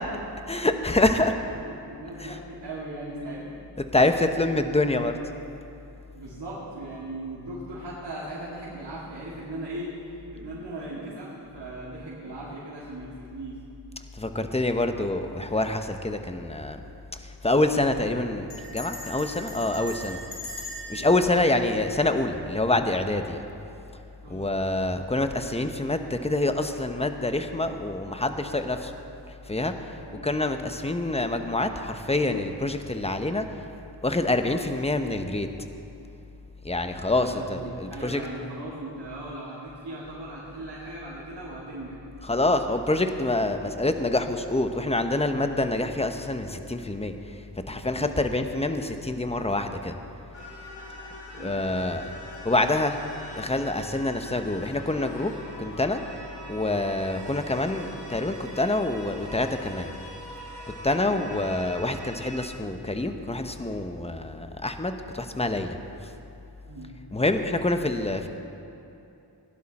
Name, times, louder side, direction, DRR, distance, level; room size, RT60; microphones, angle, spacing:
voice 1, 0.5-1.3 2.2-2.4 3.9-5.1 14.2-16.8 17.4-20.2 20.9-23.4 24.3-28.9 29.5-29.7 30.2-33.4 34.0-35.5 36.6-38.2 42.3-47.1 47.7-49.9 51.4-52.1 52.4-53.0 53.3-55.3 55.6-56.0 56.5-59.9 60.8-65.8 67.1-68.3, left 2 dB, 15° left, 7 dB, 0.9 m, -26 dB
voice 2, 1.2-3.6 6.1-13.6 20.9-21.1 24.2-24.5 29.9-30.2 37.1-42.0 47.9-48.1 51.3-52.0 61.0-61.2 66.7-66.9, right 1 dB, 75° right, -9 dB, 2.5 m, -38 dB
Bell, 16.4-16.7 17.0-17.1 17.3-17.7 18.5-22.6, equal, 60° left, 3.3 m, -41 dB
sound 1, 50.3-62.4, left 1 dB, 80° left, 2.4 m, -43 dB
16.5 x 11.0 x 4.3 m, 2.8 s
cardioid pair, 45°, 42 cm